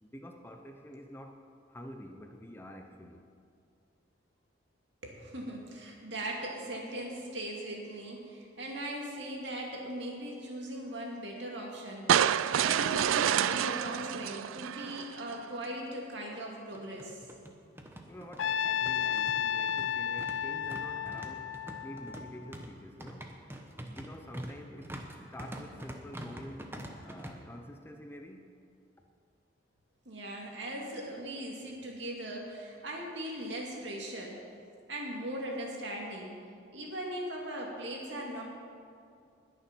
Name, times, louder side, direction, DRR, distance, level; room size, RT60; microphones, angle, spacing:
voice 1, 0.0-3.3 18.1-21.6 21.8-23.3 23.8-25.0 25.3-26.7 27.0-28.5, equal, 10° left, 4 dB, 0.6 m, -47 dB
voice 2, 5.0-17.3 30.1-34.4 34.9-36.3 36.7-38.4, right 1 dB, 60° right, -1 dB, 2.5 m, -39 dB
sound 1, 12.1-15.3, right 9 dB, 90° right, 0.3 m, -28 dB
sound 2, 15.3-15.4 15.7-15.8 16.6-27.3, right 1 dB, 10° right, 0.9 m, -45 dB
Trumpet, 18.4-22.6, left 9 dB, 70° left, 0.4 m, -33 dB
20.5 x 6.9 x 6.1 m, 2.4 s
head